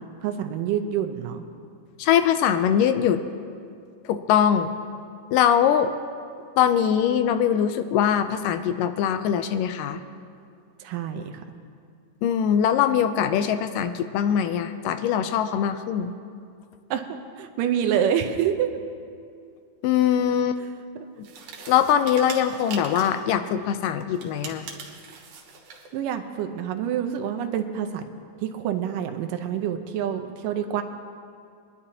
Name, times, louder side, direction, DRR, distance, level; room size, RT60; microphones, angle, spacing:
voice 1, 0.2-1.4 10.8-11.5 16.9-18.7 25.9-28.1 28.4-30.8, right 9 dB, 80° right, 6 dB, 2.3 m, -27 dB
voice 2, 2.0-3.2 4.1-4.7 5.3-5.9 6.6-10.0 12.2-16.1 19.8-20.6 21.7-24.7, left 9 dB, 80° left, 9 dB, 2.1 m, -22 dB
sound 1, 21.2-23.3 24.1-25.9, right 5 dB, 65° right, 2.5 m, -41 dB
23.5 x 11.0 x 2.8 m, 2.3 s
omnidirectional pair, 3.9 m